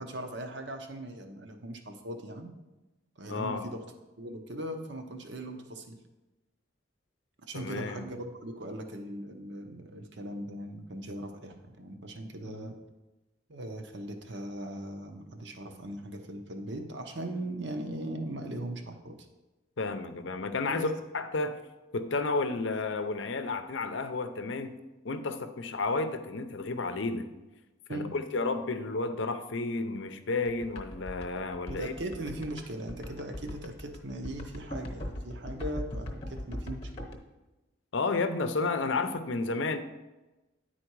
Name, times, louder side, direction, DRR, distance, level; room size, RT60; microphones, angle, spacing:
voice 1, 0.0-2.5 3.2-3.8 4.2-6.0 7.4-12.8 13.5-19.2 20.7-20.9 27.9-28.1 31.7-36.9, right 1 dB, 55° right, 5 dB, 0.8 m, -39 dB
voice 2, 3.3-3.7 7.5-8.1 12.4-12.7 19.8-21.6 21.9-24.8 25.0-27.3 27.9-31.9 37.9-39.8, left 3 dB, 65° left, 9 dB, 0.6 m, -32 dB
sound 1, 30.5-37.1, left 1 dB, 30° left, 1.0 m, -39 dB
9.9 x 4.3 x 4.6 m, 1.1 s
head